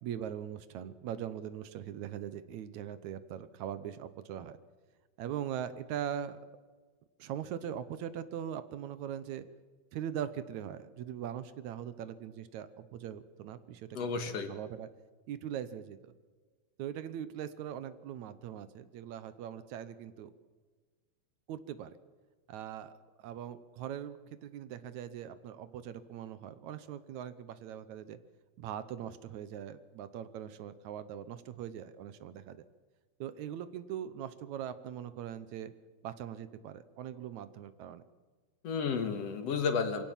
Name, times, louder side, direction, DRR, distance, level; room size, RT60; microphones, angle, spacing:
voice 1, 0.0-4.6 5.2-6.4 7.2-9.4 9.9-14.9 15.3-16.1 16.8-20.3 21.5-22.0 22.5-22.9 23.2-28.2 28.6-32.7 33.2-35.7 36.0-38.0, right 10 dB, 75° right, 13 dB, 2.2 m, -41 dB
voice 2, 13.9-14.5 38.6-40.0, left 5 dB, 60° left, 8 dB, 2.5 m, -32 dB
23.5 x 16.5 x 7.3 m, 1.4 s
omnidirectional pair, 3.5 m